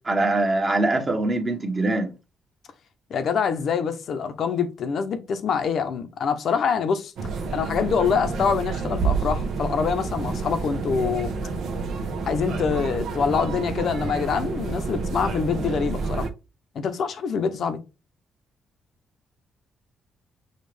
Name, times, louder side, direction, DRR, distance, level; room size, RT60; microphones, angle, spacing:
voice 1, 0.0-2.1, right 2 dB, 30° right, 1.2 m, -23 dB
voice 2, 3.1-7.1 7.5-11.3 12.3-16.3 16.7-17.8, left 6 dB, 60° left, 0.8 m, -25 dB
sound 1, 7.2-16.3, right 4 dB, 75° right, 0.8 m, -29 dB
6.4 x 2.4 x 3.3 m
cardioid pair, 90°, 0 cm